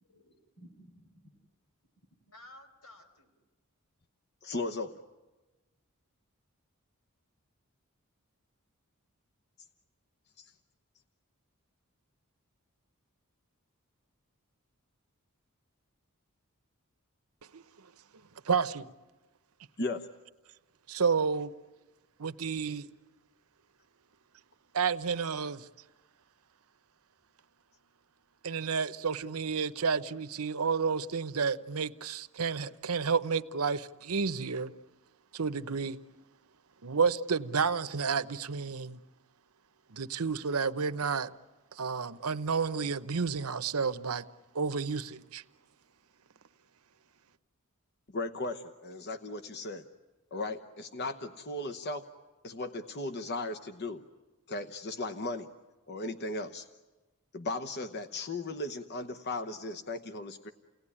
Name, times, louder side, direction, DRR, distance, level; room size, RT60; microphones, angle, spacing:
voice 1, 0.1-1.4 2.3-3.3, left 1 dB, 85° left, 4.7 m, -55 dB
voice 2, 4.4-5.0 10.4-10.5 19.8-20.1 48.1-49.8 50.3-52.1 52.4-54.0 54.5-55.5 55.9-56.7 57.3-60.5, left 2 dB, 50° left, 0.9 m, -36 dB
voice 3, 18.4-18.9 20.9-21.5 22.2-22.9 24.7-25.7 28.4-34.7 35.3-36.0 36.8-39.0 39.9-41.3 41.7-44.2 44.5-45.4, right 5 dB, 85° right, 0.9 m, -31 dB
29.5 x 18.5 x 9.9 m
head